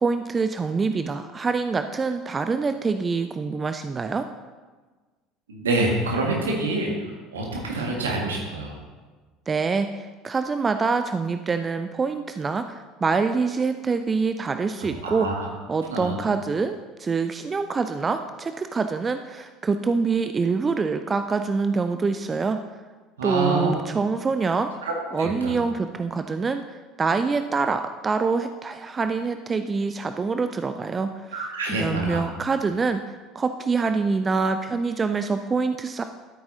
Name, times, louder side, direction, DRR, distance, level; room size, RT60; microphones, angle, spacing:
voice 1, 0.0-4.2 9.5-12.6 13.0-15.3 15.7-22.6 23.2-24.7 25.1-31.4 31.7-33.0 33.3-36.0, right 4 dB, 25° right, 9 dB, 0.4 m, -25 dB
voice 2, 5.5-6.9 7.3-8.8 15.0-15.5 15.9-16.2 23.2-23.8 24.8-25.6 31.3-32.2, right 2 dB, 75° right, -1 dB, 1.8 m, -26 dB
13.0 x 8.7 x 2.8 m, 1.3 s
figure-of-eight pair, 65°, 0 cm